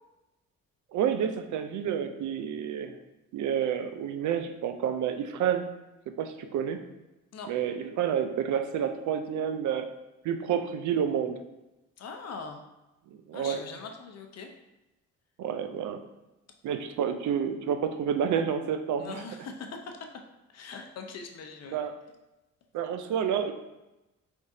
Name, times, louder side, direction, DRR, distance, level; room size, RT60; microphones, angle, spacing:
voice 1, 0.9-3.0 3.3-5.7 6.2-6.8 7.5-9.9 10.2-11.4 13.1-13.6 15.4-16.0 16.6-19.2 21.7-21.9 22.7-23.5, right 8 dB, 75° right, 8 dB, 0.5 m, -29 dB
voice 2, 12.0-12.6 13.3-14.5 19.0-20.0 20.5-21.8, left 4 dB, 55° left, 4 dB, 0.7 m, -41 dB
4.7 x 3.6 x 2.7 m, 1.0 s
cardioid pair, 90°, 30 cm